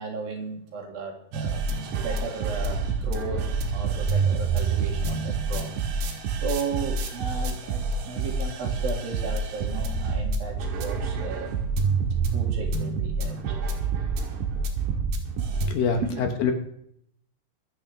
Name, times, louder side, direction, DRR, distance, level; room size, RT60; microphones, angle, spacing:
voice 1, 0.0-1.6 2.0-3.4 3.7-5.7 6.4-11.6 12.3-13.7 15.8-16.2, right 4 dB, 65° right, 0 dB, 3.7 m, -35 dB
sound 1, 1.3-15.7, right 4 dB, 90° right, 3.8 m, -27 dB
voice 2, 15.7-16.5, left 6 dB, 70° left, 4 dB, 2.4 m, -25 dB
24.0 x 9.2 x 3.3 m, 0.71 s
omnidirectional pair, 4.7 m